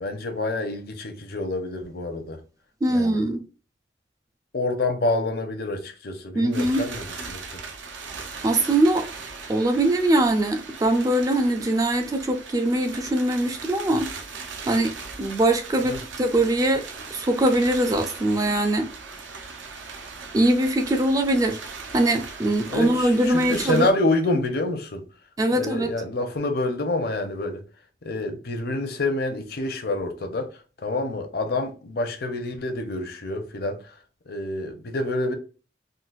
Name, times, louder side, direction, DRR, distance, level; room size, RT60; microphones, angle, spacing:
voice 1, 0.0-2.4 2.9-3.2 4.5-7.5 15.8-16.0 22.7-25.1 25.5-27.6 28.0-34.0 34.3-35.3, left 2 dB, 55° left, 0.6 m, -27 dB
voice 2, 2.8-3.4 6.3-6.8 8.4-9.1 9.5-14.1 14.7-14.9 15.2-16.8 17.1-18.9 20.3-21.6 21.9-23.9 25.4-25.9, right 1 dB, 20° right, 0.3 m, -22 dB
sound 1, 6.5-23.9, right 4 dB, 90° right, 0.7 m, -39 dB
3.8 x 2.3 x 2.3 m
head